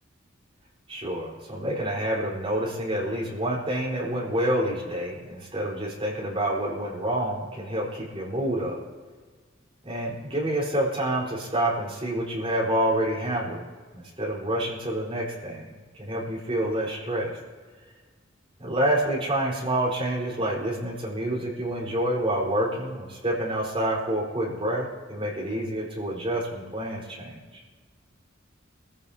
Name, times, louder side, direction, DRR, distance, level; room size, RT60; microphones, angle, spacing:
voice 1, 0.9-8.8 9.8-13.6 13.9-15.7 16.0-17.4 18.6-27.4, right 1 dB, 30° right, -5 dB, 4.3 m, -28 dB
25.5 x 15.0 x 2.9 m, 1.5 s
head